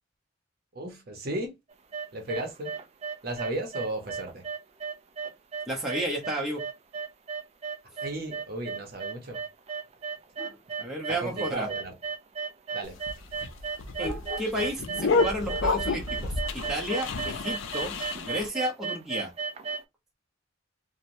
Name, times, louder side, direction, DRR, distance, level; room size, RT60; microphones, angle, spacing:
voice 1, 0.7-1.5 2.1-2.7 3.2-4.5 8.0-9.4 11.1-11.9 12.7-13.0, right 1 dB, 50° right, 0.7 m, -35 dB
sound 1, 1.7-19.8, right 5 dB, 30° right, 0.3 m, -35 dB
voice 2, 5.7-6.6 10.4-11.7 14.0-18.0 18.3-19.3, right 1 dB, 5° right, 0.7 m, -32 dB
sound 2, 12.8-18.5, left 4 dB, 85° left, 0.5 m, -30 dB
2.9 x 2.2 x 2.6 m
head